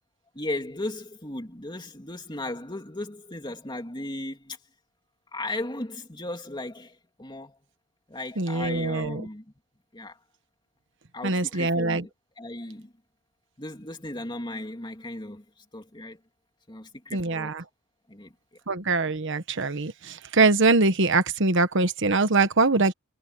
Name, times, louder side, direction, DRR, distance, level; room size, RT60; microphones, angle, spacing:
voice 1, 0.3-4.6 5.3-7.6 8.1-9.4 9.9-10.2 11.1-12.1 12.4-12.9 13.6-16.2 16.7-17.6 18.1-18.3, left 1 dB, 20° left, 2.8 m, -36 dB
voice 2, 8.4-9.2 11.2-12.0 17.1-17.6 18.7-22.9, right 3 dB, 60° right, 1.2 m, -23 dB
head